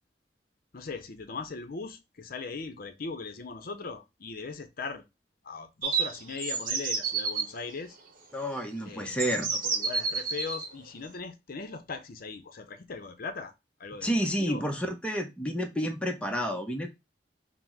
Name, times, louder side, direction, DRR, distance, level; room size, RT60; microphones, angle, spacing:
voice 1, 0.7-5.0 5.4-8.0 8.9-13.5 13.8-14.6, left 4 dB, 55° left, 0.6 m, -39 dB
sound 1, 5.8-7.5 8.5-8.6 9.2-10.7, right 5 dB, 50° right, 0.9 m, -30 dB
voice 2, 8.3-9.5 14.0-16.9, equal, 5° left, 0.6 m, -30 dB
4.0 x 2.0 x 4.4 m
head